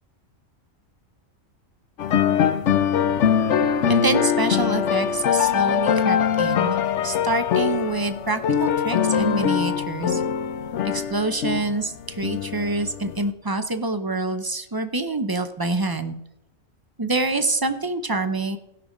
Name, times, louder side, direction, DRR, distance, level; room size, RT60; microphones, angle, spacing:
sound 1, 2.0-13.3, left 8 dB, 70° left, 1.0 m, -22 dB
voice 1, 3.9-6.8 7.0-10.2 10.8-16.2 17.0-18.6, right 2 dB, 25° right, 8 dB, 0.5 m, -26 dB
17.0 x 6.0 x 5.1 m, 0.86 s
omnidirectional pair, 1.3 m